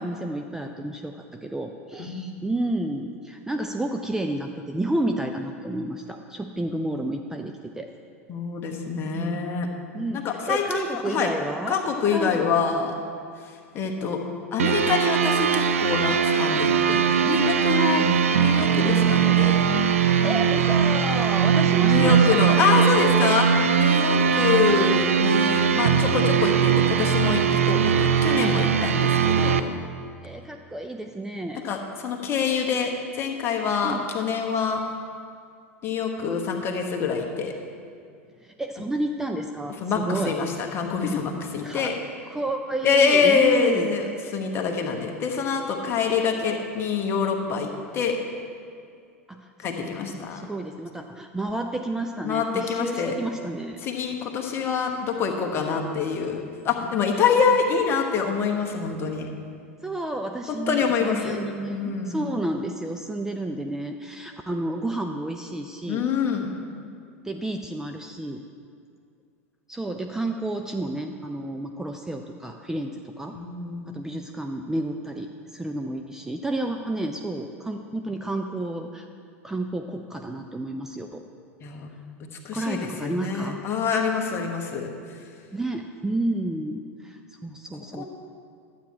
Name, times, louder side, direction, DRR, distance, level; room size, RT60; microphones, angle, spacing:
voice 1, 0.0-7.9 9.1-9.4 9.9-11.8 12.1-12.4 18.0-18.2 18.7-19.2 20.2-23.4 24.1-24.5 30.2-31.7 33.8-34.0 38.4-40.3 41.6-41.9 42.3-44.0 49.3-53.8 59.8-66.0 67.2-68.4 69.7-73.4 73.9-79.1 79.4-81.2 82.5-83.6 85.5-88.0, right 1 dB, 5° right, 4 dB, 0.4 m, -31 dB
voice 2, 2.0-2.3 8.3-9.7 10.1-11.3 11.7-13.0 13.4-14.2 14.5-18.1 18.4-19.7 21.8-23.5 23.8-29.6 31.6-34.8 35.8-37.5 39.8-42.0 42.8-48.2 49.6-50.4 52.2-53.2 53.8-59.3 60.7-61.4 61.7-62.2 65.9-66.5 73.3-74.0 81.6-81.9 82.2-84.9 87.9-88.0, left 6 dB, 30° left, 3 dB, 1.2 m, -25 dB
sound 1, 14.6-29.6, right 7 dB, 70° right, 0.5 m, -20 dB
12.0 x 8.6 x 4.4 m, 2.3 s
figure-of-eight pair, 90°, 8 cm